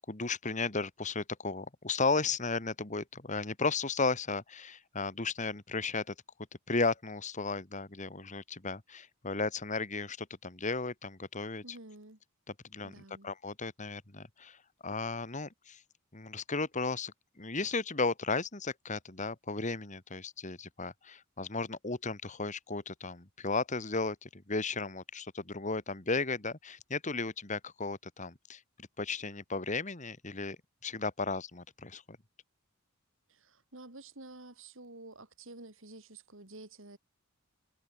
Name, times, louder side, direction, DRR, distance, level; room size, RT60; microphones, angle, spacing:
voice 1, 0.1-6.1 6.7-11.8 12.5-14.6 14.8-15.8 16.1-28.6 29.0-30.6 30.8-32.2, left 3 dB, 35° left, 1.9 m, -35 dB
voice 2, 11.6-12.2 12.8-13.3 33.3-37.0, right 2 dB, 60° right, 3.1 m, -50 dB
head